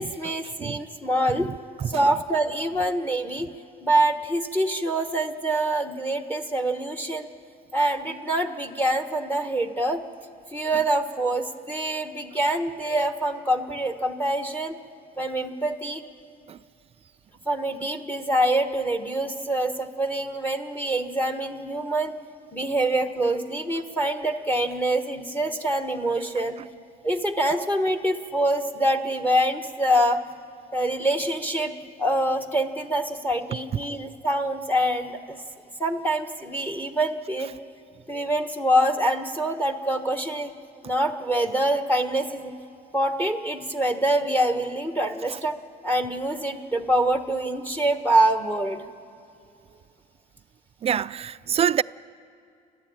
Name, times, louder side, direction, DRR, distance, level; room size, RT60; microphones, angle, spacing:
voice 1, 0.0-1.5 1.9-3.5 3.8-7.3 7.7-10.0 10.5-14.7 15.2-16.0 17.5-22.1 22.5-26.6 27.0-30.2 30.7-31.7 32.0-35.4 35.8-37.5 38.1-40.5 40.8-42.5 42.9-45.6 45.8-48.9, right 1 dB, 10° left, 1.3 m, -25 dB
voice 2, 50.8-51.8, right 9 dB, 35° right, 0.4 m, -26 dB
30.0 x 10.5 x 8.8 m
cardioid pair, 110°, 17 cm